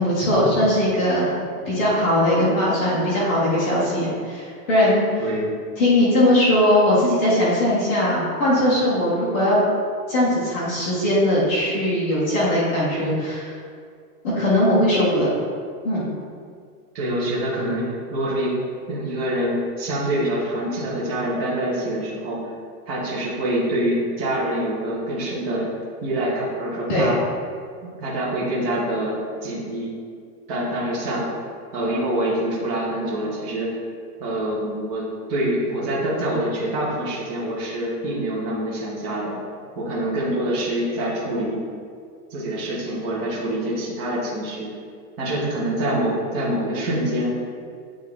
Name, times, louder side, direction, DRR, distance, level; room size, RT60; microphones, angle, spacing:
voice 1, 0.0-1.3 1.7-5.0 5.8-9.6 10.1-13.5 14.2-15.3 15.8-16.1 26.9-27.2, left 1 dB, 10° left, -9 dB, 0.3 m, -20 dB
voice 2, 5.2-5.6 16.9-18.6 18.9-22.4 22.9-25.7 26.0-27.2 28.0-29.9 30.5-31.3 31.7-33.7 34.2-35.0 35.3-39.4 39.7-41.6 42.3-44.7 45.2-47.4, right 1 dB, 30° right, -6 dB, 1.3 m, -25 dB
8.3 x 3.1 x 3.8 m, 2.2 s
supercardioid pair, 160°, 48 cm